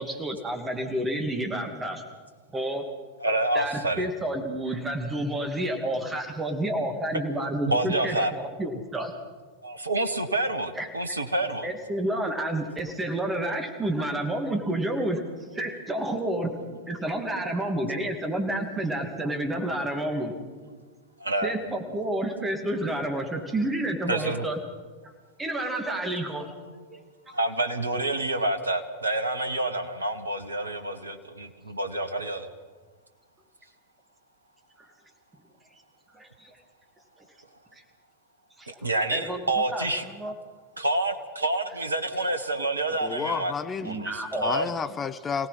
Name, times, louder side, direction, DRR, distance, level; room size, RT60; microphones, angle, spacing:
voice 1, 0.0-2.0 2.5-2.8 3.5-9.1 10.8-11.2 11.6-15.2 15.5-16.5 16.9-20.3 21.4-24.6 25.0-25.1 25.4-26.5 27.3-27.4 34.8-34.9 36.1-36.5 38.6-39.4 39.7-40.3 43.8-44.7, right 1 dB, 15° right, 4 dB, 2.6 m, -30 dB
voice 2, 3.2-4.1 7.7-8.3 9.6-11.7 21.2-21.5 24.1-24.5 26.9-27.0 27.3-32.5 38.8-40.0 40.8-43.5 43.8-44.6, right 2 dB, 80° right, 8 dB, 1.4 m, -28 dB
voice 3, 43.0-43.9 44.4-45.5, left 6 dB, 20° left, 10 dB, 1.2 m, -31 dB
26.5 x 17.5 x 6.0 m, 1.4 s
figure-of-eight pair, 90°, 0 cm